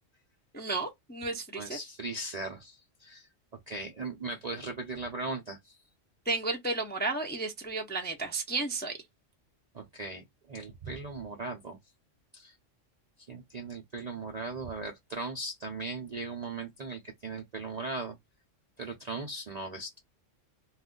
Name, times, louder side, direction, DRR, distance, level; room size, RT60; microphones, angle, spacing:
voice 1, 0.5-1.8 6.3-8.9, right 3 dB, 15° left, 0.3 m, -33 dB
voice 2, 1.6-3.3 3.7-5.8 9.7-11.8 12.3-12.5 13.3-18.2 18.8-20.0, right 3 dB, 55° right, 0.4 m, -38 dB
2.4 x 2.4 x 3.6 m
omnidirectional pair, 1.3 m